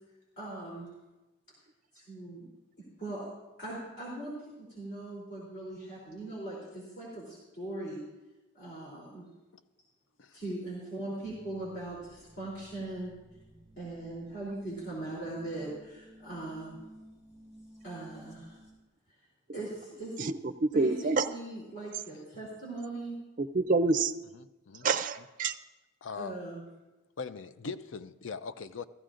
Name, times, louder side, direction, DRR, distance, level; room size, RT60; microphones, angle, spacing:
voice 1, 0.4-0.9 1.9-2.5 3.0-3.3 3.6-4.3 4.6-8.0 8.5-9.3 10.3-13.1 13.8-16.8 17.8-18.6 19.5-20.2 20.7-23.1 26.1-26.6, right 2 dB, 50° left, -7 dB, 3.3 m, -40 dB
sound 1, 11.2-18.7, equal, 35° left, 3.7 m, -56 dB
voice 2, 20.2-21.3 23.4-24.1 24.8-25.6, right 3 dB, 40° right, 8 dB, 0.4 m, -27 dB
voice 3, 24.3-24.9 26.0-26.4 27.2-28.8, left 5 dB, 70° left, 12 dB, 0.5 m, -40 dB
15.0 x 14.0 x 2.5 m, 1.1 s
head